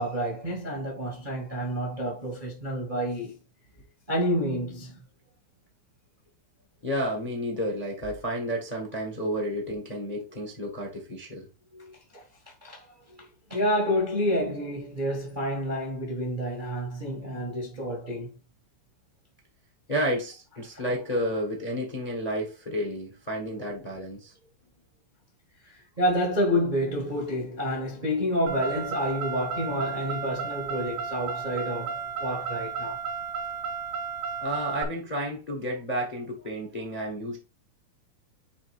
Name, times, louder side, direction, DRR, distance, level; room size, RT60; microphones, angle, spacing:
voice 1, 0.0-3.3 4.1-5.0 11.7-12.2 12.6-18.3 25.6-33.0, equal, 25° right, 1.0 m, -29 dB
voice 2, 6.8-11.5 19.9-24.3 34.4-37.4, equal, 25° left, 0.9 m, -31 dB
Car, 28.5-34.8, right 6 dB, 75° right, 2.1 m, -34 dB
8.6 x 3.7 x 3.5 m
omnidirectional pair, 3.6 m